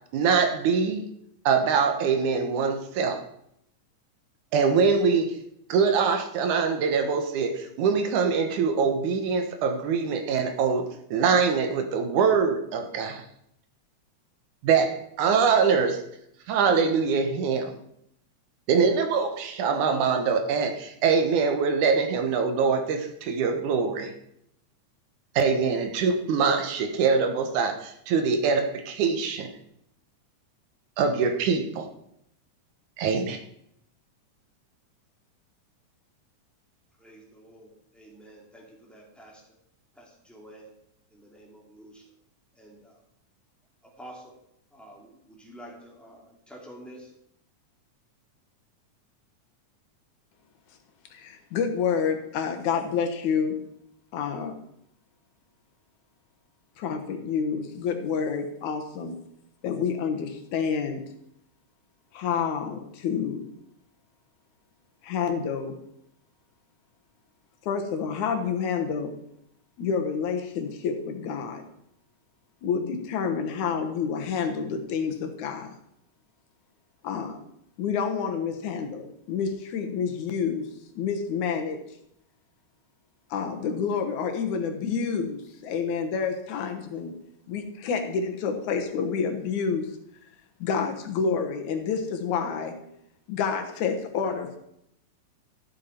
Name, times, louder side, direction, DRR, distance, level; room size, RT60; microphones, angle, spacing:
voice 1, 0.1-1.1 1.5-3.2 4.5-5.4 5.7-13.2 14.6-16.0 16.5-17.8 18.7-24.1 25.4-29.5 31.0-31.9 33.0-33.4, right 5 dB, 75° right, 7 dB, 2.5 m, -24 dB
voice 2, 37.0-39.4 40.0-40.7 41.1-42.0 42.5-43.0 43.8-44.3 44.7-47.1, right 1 dB, ahead, -3 dB, 2.0 m, -48 dB
voice 3, 51.1-53.6 54.1-54.6 56.8-59.2 59.6-61.0 62.1-63.5 65.0-65.8 67.7-69.1 69.8-71.6 72.6-75.7 77.0-77.4 77.8-80.7 81.0-81.8 83.3-87.1 87.5-89.9 90.6-92.8 93.3-94.6, left 6 dB, 75° left, 4 dB, 2.6 m, -28 dB
13.5 x 7.7 x 4.4 m, 0.75 s
omnidirectional pair, 3.6 m